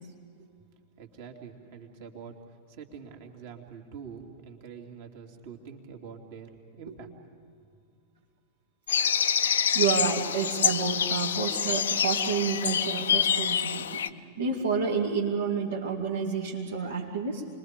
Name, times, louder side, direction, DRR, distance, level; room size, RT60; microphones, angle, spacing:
voice 1, 1.0-2.4 2.7-7.1, right 6 dB, 55° right, 2 dB, 3.0 m, -45 dB
sound 1, 8.9-14.1, left 8 dB, 65° left, 0.7 m, -26 dB
voice 2, 9.7-14.0 14.4-17.5, right 5 dB, 75° right, -4 dB, 2.6 m, -29 dB
29.5 x 22.5 x 5.2 m, 2.3 s
figure-of-eight pair, 90°, 0 cm